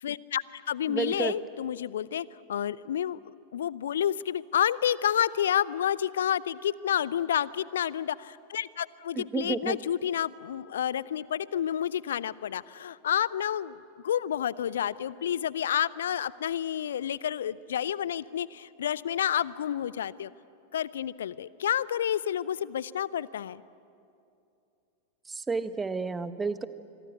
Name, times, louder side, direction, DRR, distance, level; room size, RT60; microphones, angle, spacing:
voice 1, 0.0-3.2 3.5-20.3 20.7-23.6, left 10 dB, 65° left, 21 dB, 0.5 m, -30 dB
voice 2, 0.9-1.3 9.2-9.8 25.3-26.6, right 4 dB, 15° right, 13 dB, 1.0 m, -31 dB
25.0 x 23.5 x 8.3 m, 2.7 s
figure-of-eight pair, 90°, 0 cm